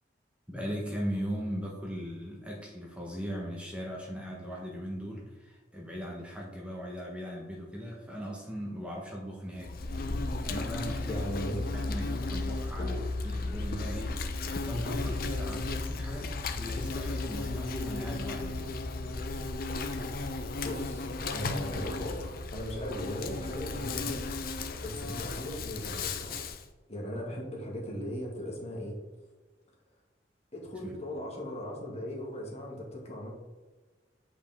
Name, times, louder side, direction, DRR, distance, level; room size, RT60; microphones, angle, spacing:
voice 1, 0.5-9.8 10.5-11.3 11.7-12.9 13.2-18.7 30.8-30.9, equal, 5° right, -3 dB, 1.1 m, -38 dB
Insect, 9.6-26.6, left 3 dB, 55° left, 0.6 m, -34 dB
voice 2, 11.1-11.6 12.8-13.0 20.6-24.2 24.5-26.5 26.9-29.0 30.5-33.3, equal, 35° left, -2 dB, 1.7 m, -38 dB
8.1 x 5.1 x 3.5 m, 1.3 s
head